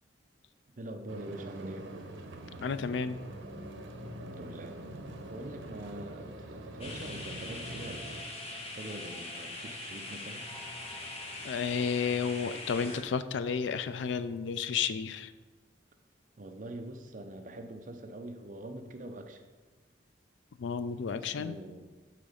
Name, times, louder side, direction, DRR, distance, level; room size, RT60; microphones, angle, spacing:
voice 1, 0.8-1.9 4.2-5.0 5.3-8.2 8.7-10.5 16.4-19.4 21.1-21.9, right 1 dB, 40° right, 6 dB, 0.6 m, -44 dB
sound 1, 1.1-8.2, right 2 dB, 90° right, 0.7 m, -45 dB
sound 2, 2.4-14.2, left 1 dB, 10° left, 0.7 m, -53 dB
voice 2, 2.6-3.2 11.4-15.3 20.6-21.6, left 6 dB, 75° left, 13 dB, 0.4 m, -32 dB
sound 3, 6.8-13.0, left 2 dB, 30° left, 0.9 m, -42 dB
7.5 x 3.9 x 5.0 m, 1.3 s
head